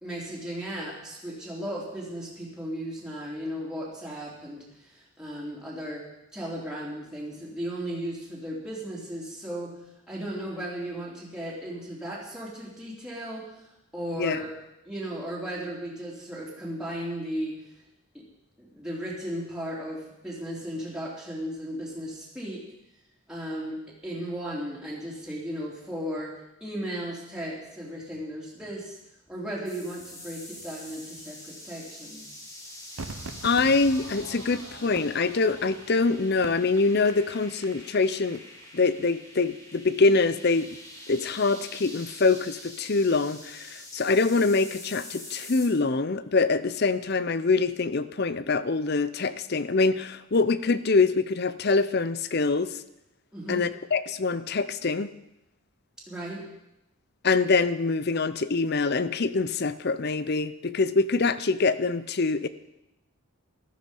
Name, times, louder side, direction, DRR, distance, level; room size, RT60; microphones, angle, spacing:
voice 1, 0.0-6.0 6.3-9.8 10.1-13.4 13.9-14.5 14.8-17.5 18.1-18.2 18.6-22.6 23.3-29.0 29.3-32.3 53.3-53.6 56.1-56.4, equal, 5° right, -6 dB, 3.7 m, -35 dB
sound 1, 29.7-45.7, left 1 dB, 15° left, 2.1 m, -45 dB
Crowd / Fireworks, 33.0-38.4 38.6-38.7, right 3 dB, 80° right, 1.0 m, -43 dB
voice 2, 33.4-38.4 38.7-40.8 41.1-52.8 53.5-55.1 57.2-62.5, left 3 dB, 50° left, 15 dB, 0.6 m, -24 dB
14.5 x 13.0 x 5.4 m, 0.87 s
head